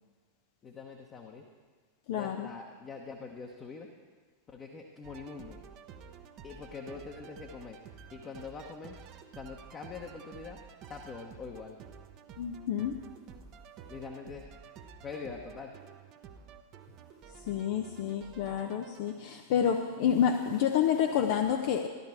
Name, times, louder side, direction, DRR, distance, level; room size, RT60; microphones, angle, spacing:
voice 1, 0.6-1.4 2.1-3.9 4.5-5.6 6.4-7.8 8.1-9.0 9.3-10.6 10.9-11.8 13.9-14.5 15.0-15.7, left 5 dB, 25° left, 1 dB, 1.1 m, -44 dB
voice 2, 2.1-2.5 12.4-13.0 17.4-21.9, left 8 dB, 50° left, 4 dB, 0.7 m, -29 dB
sound 1, 5.0-19.2, right 6 dB, 35° right, 0.9 m, -51 dB
14.5 x 11.5 x 4.5 m, 1.5 s
figure-of-eight pair, 90°, 0 cm